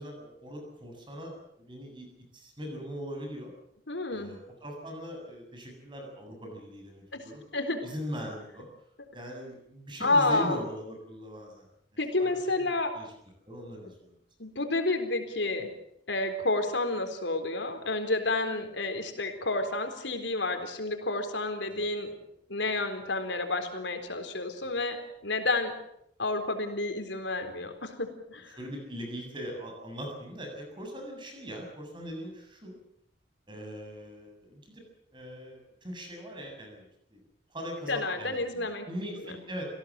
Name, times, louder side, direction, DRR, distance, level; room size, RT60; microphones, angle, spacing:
voice 1, 0.0-2.1 2.3-3.5 4.1-7.5 7.8-8.7 9.1-11.7 12.2-12.3 12.6-13.1 13.5-14.1 21.7-21.8 28.6-32.8 33.5-34.8 35.1-37.2 37.5-39.6, equal, 25° right, 2 dB, 7.6 m, -40 dB
voice 2, 3.9-4.3 7.1-7.2 7.5-7.9 10.0-10.6 12.0-12.9 14.4-15.7 16.1-22.1 22.5-25.7 26.2-28.6 37.9-38.9 39.2-39.4, left 2 dB, 85° left, 6 dB, 4.0 m, -30 dB
28.0 x 17.0 x 7.6 m, 0.74 s
head